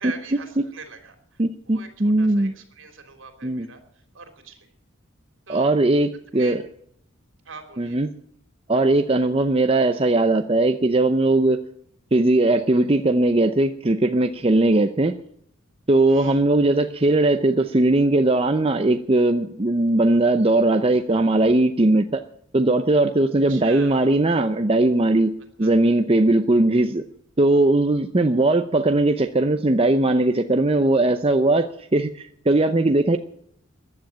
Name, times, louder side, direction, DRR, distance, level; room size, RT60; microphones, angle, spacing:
voice 1, 0.0-4.7 5.5-5.7 6.3-6.6 7.5-8.0 16.1-16.4 23.5-24.2 25.6-25.8, right 5 dB, 65° right, 6 dB, 3.4 m, -42 dB
voice 2, 1.4-2.5 3.4-3.7 5.5-6.6 7.8-8.1 8.7-11.6 12.1-15.2 15.9-22.2 22.5-25.3 25.6-27.0 27.4-33.2, right 2 dB, 25° right, 7 dB, 0.7 m, -19 dB
14.5 x 10.5 x 8.7 m, 0.67 s
head